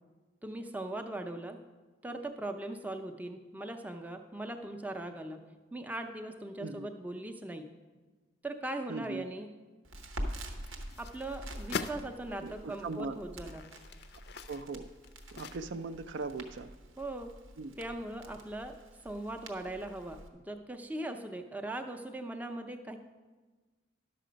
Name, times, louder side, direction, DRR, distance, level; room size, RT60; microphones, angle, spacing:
voice 1, 0.4-1.6 2.0-5.4 5.7-7.7 8.4-9.5 11.0-13.7 17.0-17.3 17.8-18.8 19.0-23.0, right 1 dB, 10° right, 5 dB, 0.5 m, -39 dB
voice 2, 8.9-9.2 12.4-13.2 14.5-14.9 15.3-16.7 17.6-17.7, right 3 dB, 65° right, 11 dB, 0.4 m, -39 dB
Crackle, 9.8-20.3, right 1 dB, 90° right, 1.0 m, -46 dB
sound 1, 10.5-12.0 12.7-12.8 13.3-16.0 16.3-16.4, left 5 dB, 55° left, 0.4 m, -43 dB
11.0 x 6.7 x 5.1 m, 1.3 s
head